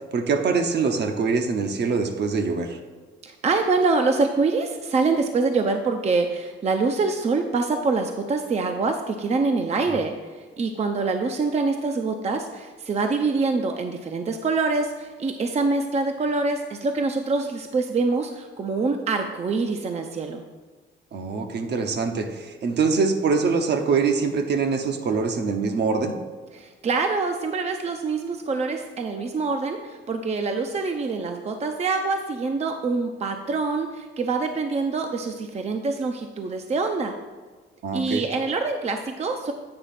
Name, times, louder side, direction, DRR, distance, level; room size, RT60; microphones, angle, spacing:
voice 1, 0.1-2.8 9.9-10.0 21.1-26.2 37.8-38.3, right 5 dB, 60° right, 5 dB, 0.9 m, -24 dB
voice 2, 3.2-20.4 26.5-37.1 37.9-39.5, right 3 dB, 35° right, 5 dB, 0.6 m, -25 dB
8.7 x 3.0 x 5.8 m, 1.4 s
cardioid pair, 90°, 20 cm